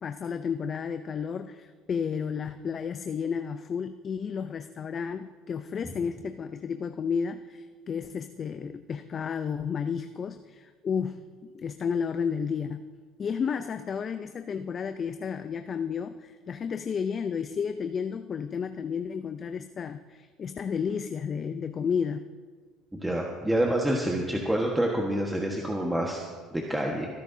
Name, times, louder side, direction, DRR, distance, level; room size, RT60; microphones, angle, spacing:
voice 1, 0.0-12.9 13.2-22.3, left 6 dB, 40° left, 9 dB, 0.5 m, -32 dB
voice 2, 22.9-26.2 26.5-27.1, right 1 dB, 10° right, -1 dB, 1.5 m, -27 dB
23.0 x 10.5 x 2.8 m, 1.5 s
supercardioid pair, 80°, 0 cm